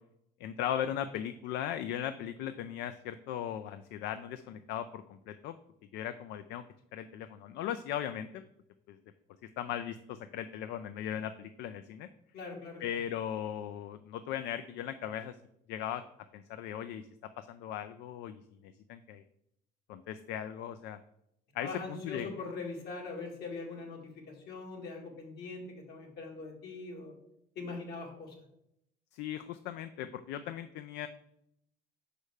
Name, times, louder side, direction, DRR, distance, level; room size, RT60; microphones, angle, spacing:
voice 1, 0.4-5.5 5.9-6.6 6.9-8.4 8.9-9.0 9.6-12.1 12.8-15.4 15.7-16.0 16.3-17.0 17.4-19.2 19.9-21.0 21.5-22.4 29.1-31.1, left 10 dB, 90° left, 11 dB, 0.4 m, -38 dB
voice 2, 12.3-12.8 21.6-27.1 27.6-28.3, left 3 dB, 70° left, 0 dB, 2.3 m, -42 dB
5.5 x 5.0 x 6.4 m, 0.77 s
cardioid pair, 110°, 17 cm